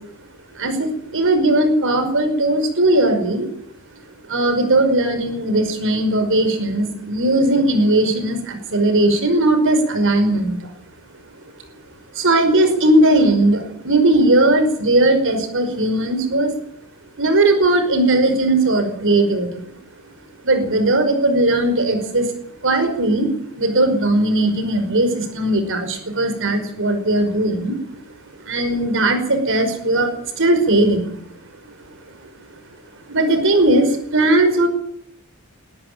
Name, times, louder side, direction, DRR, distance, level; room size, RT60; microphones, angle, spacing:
voice 1, 0.6-3.5 4.3-10.6 12.1-16.5 17.2-19.7 20.4-22.3 22.6-23.3 23.6-27.8 28.4-31.2 33.1-34.7, right 1 dB, 60° right, 7 dB, 5.3 m, -18 dB
22.0 x 13.5 x 8.7 m, 0.68 s
head